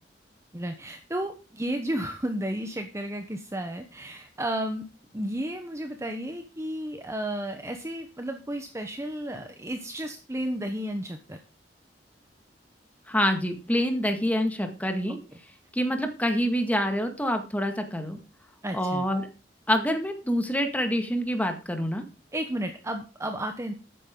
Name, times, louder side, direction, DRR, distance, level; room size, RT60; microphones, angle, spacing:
voice 1, 0.5-4.8 5.1-11.4 18.6-19.1 22.3-23.7, right 1 dB, 15° right, 6 dB, 1.0 m, -33 dB
voice 2, 13.1-15.2 15.7-18.2 18.7-19.3 19.7-22.0, equal, 10° left, 6 dB, 1.9 m, -26 dB
12.5 x 9.4 x 3.8 m, 0.33 s
head